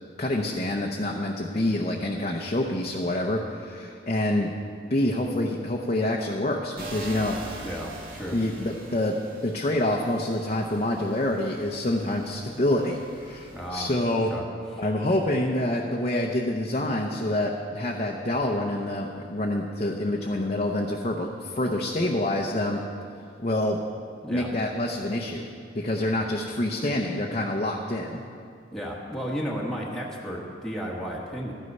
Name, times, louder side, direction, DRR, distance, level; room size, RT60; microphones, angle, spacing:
voice 1, 0.2-4.5 4.9-7.4 8.3-9.1 9.4-14.3 14.8-22.8 23.4-23.8 24.3-25.4 25.7-28.2, left 1 dB, 35° left, 0 dB, 0.8 m, -27 dB
sound 1, 6.8-13.7, right 2 dB, 50° right, 1.9 m, -43 dB
voice 2, 7.6-8.4 13.5-14.5 24.2-24.5 28.7-31.5, equal, 5° left, -4 dB, 1.4 m, -33 dB
13.0 x 9.7 x 5.4 m, 2.3 s
head